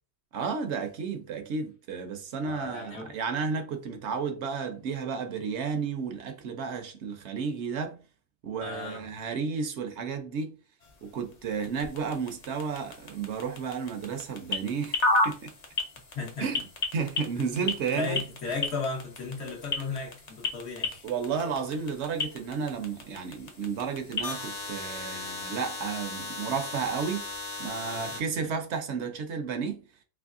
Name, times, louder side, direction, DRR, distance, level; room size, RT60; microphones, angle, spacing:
voice 1, 0.3-8.0 8.4-10.6 11.0-15.0 15.2-15.5 16.4-16.6 16.9-18.2 21.0-27.3 27.6-29.8, right 5 dB, 75° right, 1.0 m, -32 dB
voice 2, 2.4-3.1 8.6-9.1 16.1-16.5 17.4-21.1 27.9-28.2, left 4 dB, 70° left, 1.3 m, -35 dB
sound 1, 10.8-28.2, left 2 dB, 45° left, 0.6 m, -35 dB
3.4 x 3.0 x 2.5 m
omnidirectional pair, 1.2 m